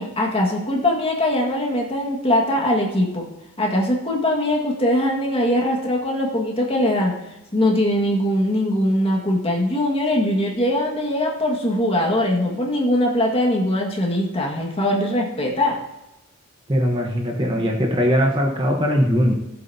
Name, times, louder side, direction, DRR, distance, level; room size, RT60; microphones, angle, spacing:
voice 1, 0.0-3.2 3.6-7.1 7.5-15.8 17.6-17.8, left 1 dB, 25° left, -1 dB, 1.8 m, -21 dB
voice 2, 16.7-19.3, equal, 20° right, 1 dB, 1.0 m, -20 dB
16.5 x 7.9 x 2.8 m, 0.93 s
head